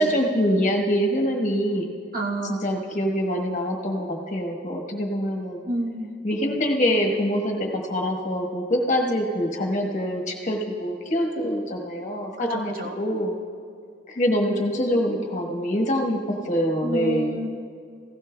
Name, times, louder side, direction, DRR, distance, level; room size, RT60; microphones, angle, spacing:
voice 1, 0.0-1.9 2.5-5.6 6.2-13.3 14.1-16.2 16.4-17.4, equal, 45° left, 1 dB, 1.3 m, -24 dB
voice 2, 2.1-2.6 5.7-6.1 12.4-13.0 16.8-17.5, right 2 dB, 55° right, 1 dB, 1.1 m, -29 dB
16.0 x 16.0 x 2.3 m, 2.3 s
head